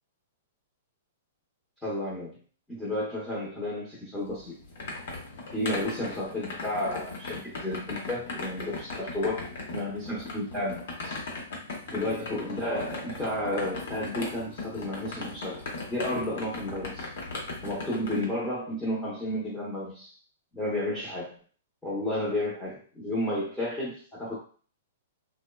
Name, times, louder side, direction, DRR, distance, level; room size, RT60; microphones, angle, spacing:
voice 1, 1.8-2.4 2.7-4.6 5.5-11.2 11.9-17.1 17.6-20.1 20.5-21.4 21.8-24.3, left 1 dB, 5° left, -7 dB, 0.7 m, -32 dB
sound 1, 4.2-18.2, left 3 dB, 65° left, 0.9 m, -38 dB
2.9 x 2.1 x 2.2 m, 0.42 s
hypercardioid pair, 155°, 0 cm